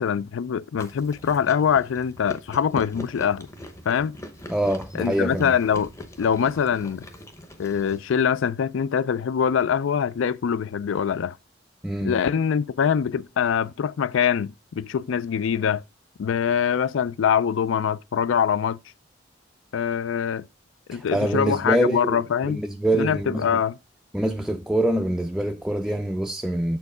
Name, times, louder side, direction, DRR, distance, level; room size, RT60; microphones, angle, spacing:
voice 1, 0.0-3.5 3.9-4.2 4.9-5.9 6.2-7.1 7.6-11.4 12.0-15.8 16.2-18.8 19.7-20.4 20.9-22.6 22.9-23.8, left 7 dB, 75° left, 0.4 m, -23 dB
Chewing mastication, 0.8-8.0, equal, 15° left, 0.8 m, -41 dB
voice 2, 4.5-5.5 11.8-12.2 20.9-23.6 24.1-26.8, right 1 dB, 5° right, 0.3 m, -25 dB
7.0 x 4.6 x 4.8 m
head